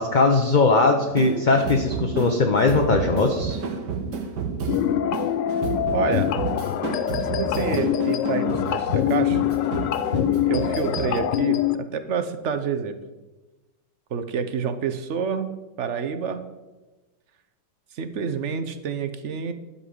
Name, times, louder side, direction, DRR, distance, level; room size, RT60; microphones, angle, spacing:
voice 1, 0.0-3.6, left 3 dB, 40° left, 3 dB, 0.7 m, -20 dB
sound 1, 1.1-11.2, right 5 dB, 70° right, 1.9 m, -31 dB
sound 2, 4.7-11.8, left 11 dB, 90° left, 1.3 m, -24 dB
voice 2, 5.9-6.3 7.2-9.4 9.7-9.9 10.4-13.0 14.1-15.5 15.8-16.5 17.9-19.5, right 6 dB, 55° right, 10 dB, 0.9 m, -28 dB
12.5 x 5.3 x 7.9 m, 1.1 s
omnidirectional pair, 1.9 m